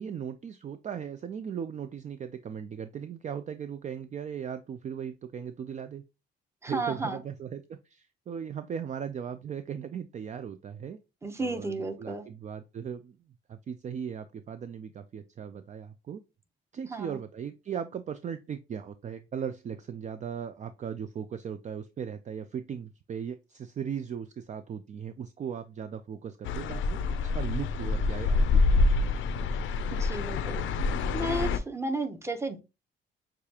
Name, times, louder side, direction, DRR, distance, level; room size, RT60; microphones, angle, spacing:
voice 1, 0.0-6.0 6.6-11.0 11.4-13.2 13.5-16.2 16.7-28.9, right 8 dB, 40° right, 10 dB, 0.4 m, -38 dB
voice 2, 6.6-7.2 11.2-12.3 16.9-17.2 29.9-30.6 31.1-32.6, right 2 dB, 15° right, 7 dB, 0.8 m, -33 dB
sound 1, 26.4-31.6, left 3 dB, 80° left, 0.5 m, -26 dB
6.6 x 2.4 x 2.9 m, 0.27 s
cardioid pair, 90°, 20 cm